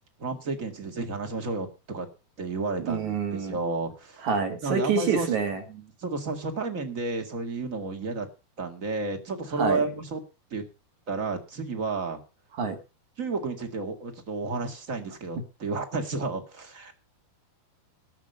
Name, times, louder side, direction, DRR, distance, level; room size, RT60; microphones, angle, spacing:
voice 1, 0.2-2.1 2.4-4.3 4.6-5.3 5.7-8.3 8.6-10.2 10.5-10.6 11.1-12.2 13.2-16.9, right 3 dB, 30° right, 5 dB, 1.5 m, -32 dB
voice 2, 2.8-3.6 4.2-5.6 9.6-9.8 12.6-12.8, right 5 dB, 55° right, 4 dB, 3.3 m, -26 dB
13.5 x 6.5 x 7.9 m, 0.32 s
omnidirectional pair, 4.4 m